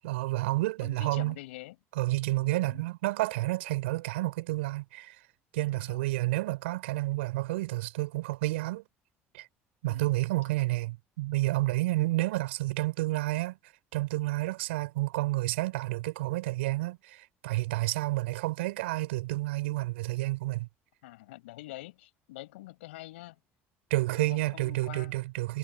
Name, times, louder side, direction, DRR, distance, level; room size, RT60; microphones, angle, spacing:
voice 1, 0.0-1.3 2.0-5.2 5.5-8.8 9.3-9.5 9.8-13.6 13.9-20.7 23.9-25.6, right 19 dB, 90° right, 5.7 m, -30 dB
voice 2, 0.8-1.8 2.6-2.9 5.7-6.1 9.8-10.1 21.0-23.4 24.1-25.2, left 18 dB, 90° left, 7.9 m, -46 dB
supercardioid pair, 75°, 6 cm